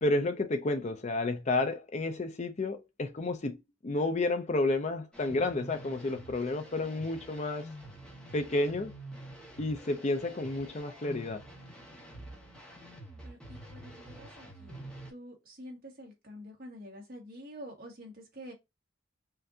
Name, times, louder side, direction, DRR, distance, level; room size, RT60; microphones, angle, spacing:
voice 1, 0.0-3.6 3.8-7.7 8.3-8.9 9.6-11.4, left 2 dB, 35° left, 0.5 m, -31 dB
sound 1, 5.1-15.1, right 1 dB, 5° left, 1.1 m, -48 dB
voice 2, 13.2-18.5, equal, 45° right, 1.6 m, -49 dB
5.6 x 2.6 x 2.7 m
head